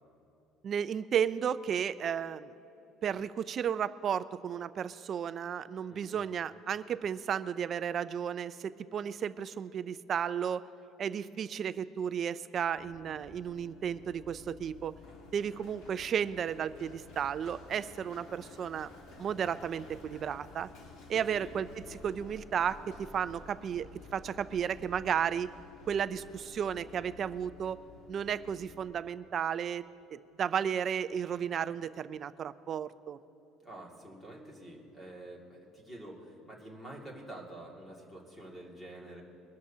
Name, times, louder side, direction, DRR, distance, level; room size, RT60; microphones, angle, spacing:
voice 1, 0.6-2.5 3.0-10.6 11.0-14.9 15.3-18.9 19.2-20.7 21.1-25.5 25.9-27.8 28.1-33.2, right 8 dB, 30° right, 14 dB, 0.3 m, -33 dB
Run, 12.7-28.9, left 3 dB, 55° left, 1.8 m, -52 dB
voice 2, 33.6-39.2, right 1 dB, 10° left, -2 dB, 2.2 m, -48 dB
22.0 x 13.0 x 2.8 m, 2.9 s
cardioid pair, 170°, 0 cm